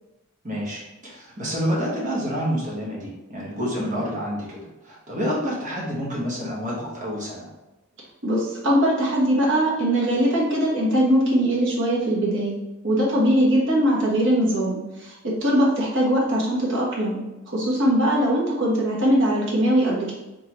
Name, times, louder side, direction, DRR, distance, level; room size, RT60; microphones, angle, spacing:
voice 1, 0.4-7.5, equal, 35° right, -5 dB, 1.3 m, -28 dB
voice 2, 8.2-12.6 12.8-17.2 17.5-20.1, equal, 60° right, -4 dB, 1.3 m, -21 dB
3.8 x 3.6 x 3.0 m, 1.0 s
head